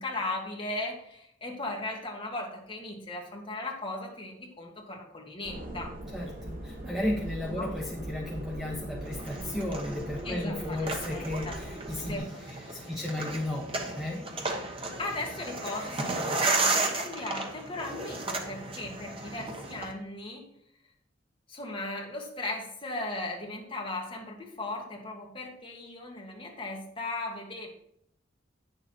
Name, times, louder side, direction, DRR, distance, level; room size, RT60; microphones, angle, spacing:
voice 1, 0.0-5.9 7.5-7.7 10.2-10.8 11.1-11.6 12.1-12.9 15.0-20.5 21.5-27.7, left 2 dB, 25° left, -1 dB, 1.9 m, -37 dB
sound 1, 5.4-12.2, right 1 dB, 45° right, 1.7 m, -41 dB
voice 2, 6.1-12.2 12.7-13.7 13.9-14.2, left 1 dB, ahead, -2 dB, 1.0 m, -34 dB
sound 2, 9.1-19.9, right 2 dB, 25° right, 1.1 m, -34 dB
9.4 x 6.8 x 4.4 m, 0.73 s
head